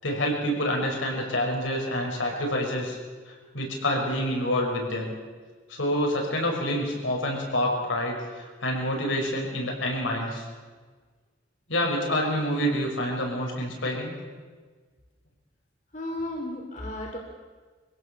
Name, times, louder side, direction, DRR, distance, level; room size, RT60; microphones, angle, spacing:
voice 1, 0.0-3.0 3.3-5.1 5.7-10.4 11.7-14.1, equal, 85° left, 0 dB, 6.0 m, -27 dB
voice 2, 15.9-17.2, left 1 dB, 40° left, 1 dB, 3.0 m, -34 dB
24.5 x 16.5 x 7.2 m, 1.4 s
head